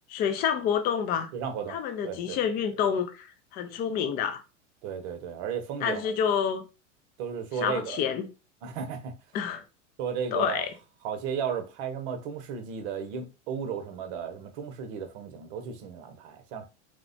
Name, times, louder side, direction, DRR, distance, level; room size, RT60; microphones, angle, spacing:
voice 1, 0.1-1.3 1.7-3.3 3.5-4.4 5.8-6.6 7.6-8.3 9.3-9.6 10.3-10.7, left 8 dB, 25° left, 0.3 m, -28 dB
voice 2, 1.3-1.8 2.0-2.4 4.8-6.2 7.2-8.0 8.6-9.1 10.0-10.6 11.0-16.7, right 7 dB, 60° right, 0.8 m, -34 dB
3.1 x 2.1 x 2.5 m
hypercardioid pair, 105°, 37 cm